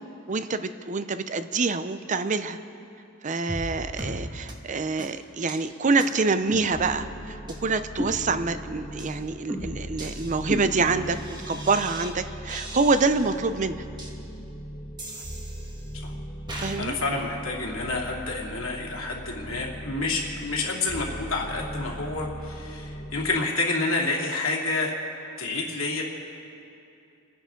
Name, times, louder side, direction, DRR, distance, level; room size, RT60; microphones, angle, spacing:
voice 1, 0.3-2.6 3.2-13.8 16.6-16.9, right 4 dB, 35° right, 11 dB, 0.5 m, -26 dB
sound 1, 3.5-3.7 4.0-4.2 4.5-4.6 5.0-5.1 5.5-5.6 6.0-6.1 6.5-7.1 7.5-7.6 8.0-8.6 9.0-9.1 9.5-12.1 12.5-13.4 14.0-14.1 15.0-15.9 16.5-16.8, right 1 dB, 20° right, 1.7 m, -36 dB
sound 2, 6.7-23.3, right 1 dB, 30° left, 1.6 m, -39 dB
voice 2, 16.5-24.9 25.4-26.0, left 3 dB, 90° left, -2 dB, 2.6 m, -29 dB
29.0 x 10.5 x 3.8 m, 2.8 s
head